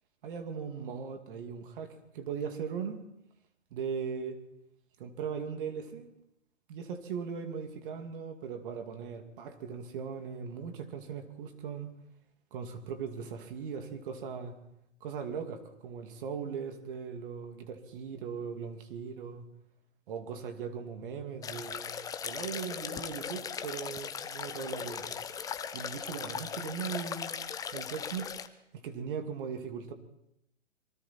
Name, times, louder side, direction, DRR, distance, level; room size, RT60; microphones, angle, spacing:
voice 1, 0.2-3.0 3.7-4.4 5.0-6.1 6.7-11.9 12.5-14.5 15.0-19.5 20.1-21.9 22.2-25.2 25.7-27.3 27.7-28.3 28.7-29.9, right 6 dB, 45° right, 6 dB, 2.6 m, -39 dB
sound 1, 21.4-28.5, left 7 dB, 10° left, 0.8 m, -38 dB
26.0 x 23.5 x 4.4 m, 0.81 s
figure-of-eight pair, 125°, 36 cm